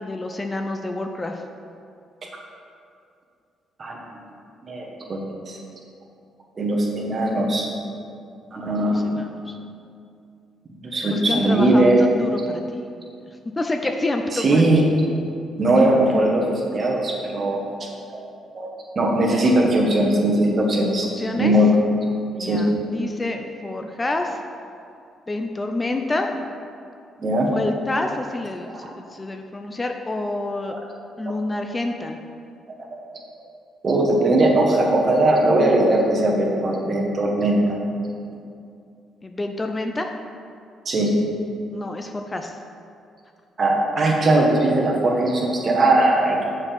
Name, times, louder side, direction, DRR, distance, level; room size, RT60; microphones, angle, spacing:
voice 1, 0.0-1.4 8.9-9.5 11.1-12.9 13.6-14.6 21.2-21.5 22.3-24.4 25.3-26.3 27.5-30.8 31.2-32.2 39.2-40.1 41.7-42.5, left 2 dB, 20° left, 4 dB, 0.4 m, -28 dB
voice 2, 4.6-5.6 6.6-7.7 8.5-9.1 10.8-12.0 14.3-14.8 15.6-17.6 18.5-21.1 21.4-21.7 22.4-22.6 27.2-27.5 30.7-30.8 33.8-37.6 40.8-41.1 43.6-46.4, right 1 dB, 40° right, -1 dB, 1.3 m, -19 dB
6.9 x 4.5 x 5.2 m, 2.5 s
cardioid pair, 90°, 0 cm